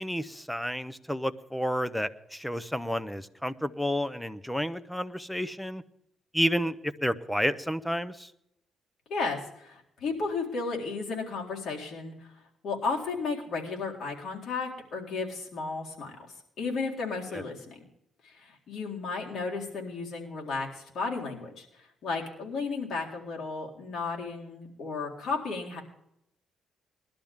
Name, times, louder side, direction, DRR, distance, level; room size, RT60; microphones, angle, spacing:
voice 1, 0.0-5.8 6.3-6.8 7.0-8.3 17.3-17.4, equal, 5° left, 14 dB, 0.8 m, -30 dB
voice 2, 9.1-12.1 12.6-17.8 18.2-25.8, left 4 dB, 65° left, -1 dB, 4.0 m, -34 dB
20.5 x 12.0 x 3.6 m, 0.78 s
cardioid pair, 90°, 0 cm